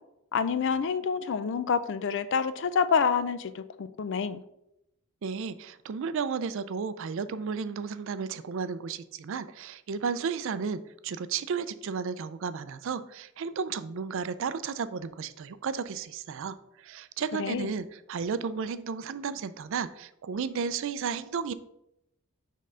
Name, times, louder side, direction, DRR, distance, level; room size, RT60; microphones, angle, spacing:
voice 1, 0.3-4.4 17.4-17.7, left 6 dB, 55° left, 13 dB, 0.4 m, -27 dB
voice 2, 5.2-21.5, right 5 dB, 60° right, 13 dB, 0.4 m, -33 dB
5.3 x 3.7 x 5.5 m, 0.81 s
head